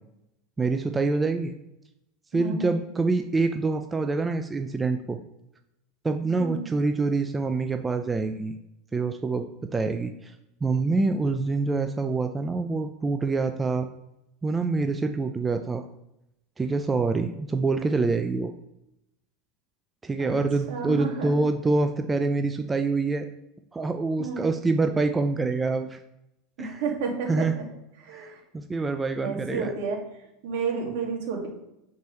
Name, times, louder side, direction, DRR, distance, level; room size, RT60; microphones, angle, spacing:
voice 1, 0.6-1.5 2.3-5.2 6.0-8.5 8.9-9.5 9.7-10.3 10.6-13.9 14.4-15.9 16.6-18.5 20.0-23.3 23.7-26.0 26.6-26.8 27.3-27.6 28.1-29.7, right 3 dB, 15° right, 6 dB, 0.4 m, -26 dB
voice 2, 2.3-2.8 6.4-6.6 20.2-20.4 20.7-21.4 24.2-24.5 26.6-27.6 28.0-28.4 29.2-30.0 30.4-31.5, right 5 dB, 70° right, 0 dB, 2.0 m, -31 dB
6.8 x 4.6 x 3.1 m, 0.86 s
supercardioid pair, 120°, 0 cm